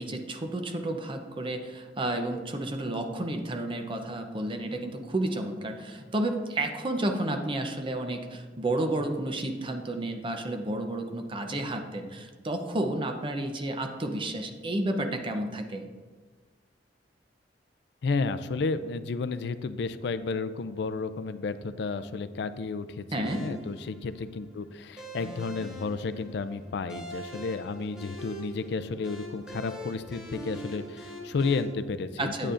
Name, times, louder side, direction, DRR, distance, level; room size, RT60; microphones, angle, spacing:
voice 1, 0.0-15.8 23.1-23.5 32.2-32.5, right 1 dB, 30° right, 5 dB, 0.7 m, -31 dB
voice 2, 18.0-32.5, left 4 dB, 70° left, 12 dB, 0.4 m, -32 dB
sound 1, 23.3-31.6, equal, 5° right, 1.7 m, -43 dB
9.0 x 8.4 x 2.5 m, 1.4 s
head